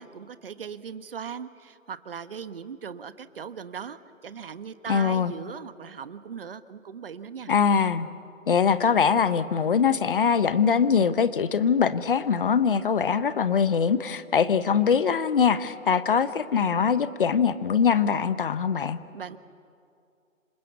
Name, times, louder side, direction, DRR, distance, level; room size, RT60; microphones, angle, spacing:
voice 1, 0.0-7.5 19.1-19.4, right 7 dB, 45° right, 13 dB, 1.2 m, -39 dB
voice 2, 4.9-5.3 7.5-8.1 8.5-19.0, left 6 dB, 40° left, 14 dB, 1.1 m, -22 dB
27.5 x 26.5 x 8.3 m, 2.5 s
figure-of-eight pair, 160°, 40 cm